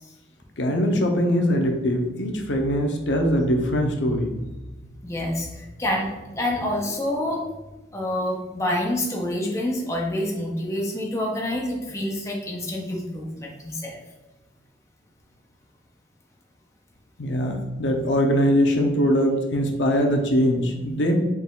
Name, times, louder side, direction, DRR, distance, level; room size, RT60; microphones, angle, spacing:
voice 1, 0.6-4.5 17.2-21.2, equal, 75° left, 3 dB, 0.6 m, -22 dB
voice 2, 5.0-7.4 7.9-14.0, left 1 dB, 15° left, -1 dB, 0.5 m, -27 dB
4.4 x 2.3 x 3.7 m, 1.1 s
head